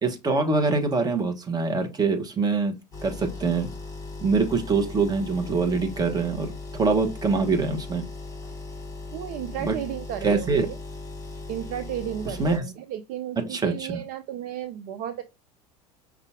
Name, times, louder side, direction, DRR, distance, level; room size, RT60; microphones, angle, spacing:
voice 1, 0.0-2.8 3.0-3.7 4.2-8.0 9.6-9.7 10.2-10.7 12.4-12.6 13.5-14.0, right 4 dB, 20° right, 1.0 m, -24 dB
sound 1, 2.9-12.6, left 3 dB, 15° left, 1.5 m, -38 dB
voice 2, 9.1-10.8 11.5-15.2, right 11 dB, 45° right, 0.4 m, -33 dB
5.4 x 2.4 x 3.5 m
figure-of-eight pair, 80°, 20 cm